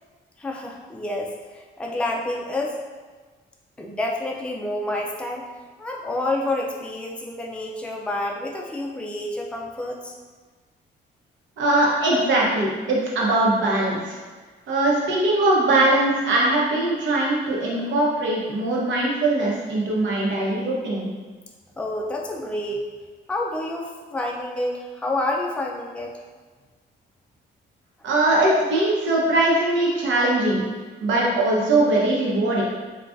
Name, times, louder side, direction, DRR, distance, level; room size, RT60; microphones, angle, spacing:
voice 1, 0.4-2.8 3.8-5.5 5.8-10.1 21.8-22.8 23.3-26.2, left 1 dB, 5° left, -1 dB, 0.4 m, -28 dB
voice 2, 11.6-14.2 14.7-21.1 28.0-30.7 31.0-32.6, right 2 dB, 70° right, -4 dB, 0.9 m, -21 dB
3.6 x 2.3 x 2.5 m, 1.4 s
cardioid pair, 90°, 20 cm